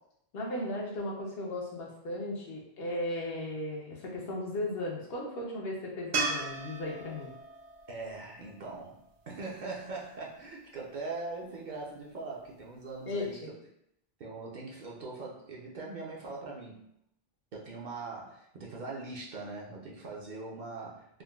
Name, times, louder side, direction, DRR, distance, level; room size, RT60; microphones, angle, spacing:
voice 1, 0.3-7.3 13.1-13.5, left 1 dB, 70° left, -2 dB, 1.0 m, -36 dB
sound 1, 6.1-9.4 12.6-12.7, right 3 dB, 90° right, 0.9 m, -36 dB
voice 2, 7.9-9.0 9.3-13.4 14.2-16.8 17.5-21.2, right 3 dB, 55° right, -3 dB, 0.6 m, -41 dB
3.6 x 2.2 x 2.3 m, 0.76 s
omnidirectional pair, 1.1 m